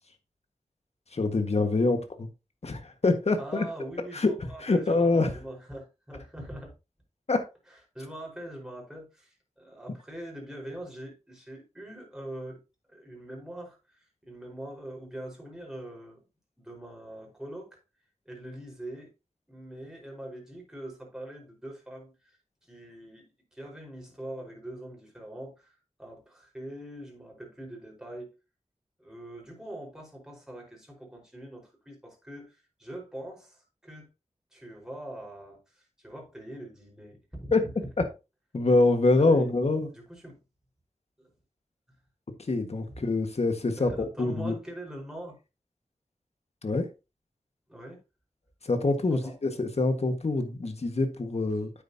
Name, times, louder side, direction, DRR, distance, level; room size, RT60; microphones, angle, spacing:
voice 1, 1.1-2.3 2.6-3.6 4.1-5.4 7.3-7.4 37.5-37.6 38.5-39.9 42.5-44.6 46.6-46.9 48.6-51.8, left 3 dB, 60° left, 1.6 m, -25 dB
voice 2, 3.4-6.7 7.9-12.6 12.9-16.3 16.6-17.8 18.2-19.1 19.5-22.4 22.7-28.3 29.0-34.1 34.5-37.5 39.2-39.5 39.9-40.4 41.2-41.3 42.9-43.0 43.8-45.4 47.7-48.0 49.1-49.3, right 1 dB, 5° right, 4.7 m, -43 dB
9.3 x 8.5 x 2.8 m
wide cardioid pair, 75°, 12 cm